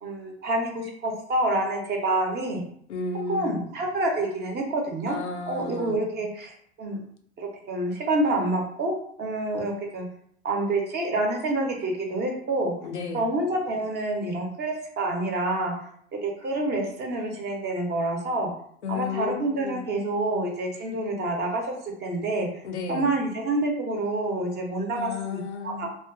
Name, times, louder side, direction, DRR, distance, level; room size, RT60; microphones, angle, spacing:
voice 1, 0.0-2.6 3.3-5.1 5.5-7.0 7.4-8.9 9.2-10.1 10.4-12.7 13.1-15.9 16.2-18.5 18.9-21.7 22.0-22.6 22.9-25.9, right 2 dB, 30° right, 1 dB, 0.7 m, -27 dB
voice 2, 2.9-3.6 5.1-6.0 12.8-13.2 18.8-19.8 22.6-23.1 24.9-25.9, left 4 dB, 90° left, 3 dB, 0.5 m, -33 dB
2.4 x 2.2 x 2.4 m, 0.65 s
hypercardioid pair, 75°, 33 cm